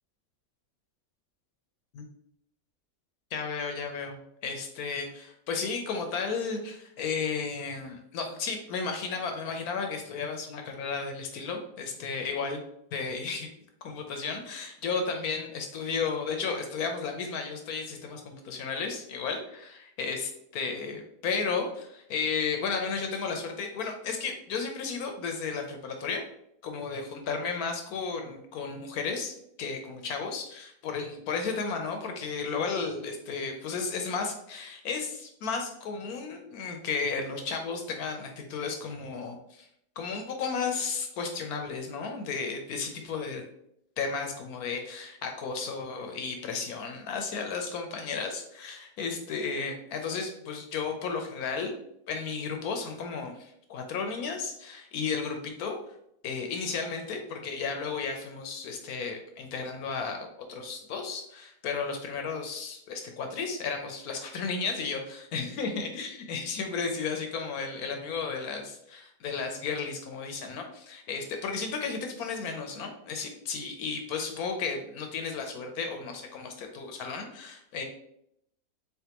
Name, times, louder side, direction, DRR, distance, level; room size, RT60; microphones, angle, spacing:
voice 1, 3.3-12.6 12.9-13.5 13.8-26.3 26.6-39.7 40.0-43.4 44.0-51.7 52.1-55.8 56.2-77.8, left 5 dB, 70° left, 4 dB, 1.0 m, -33 dB
3.9 x 3.4 x 2.9 m, 0.75 s
omnidirectional pair, 1.8 m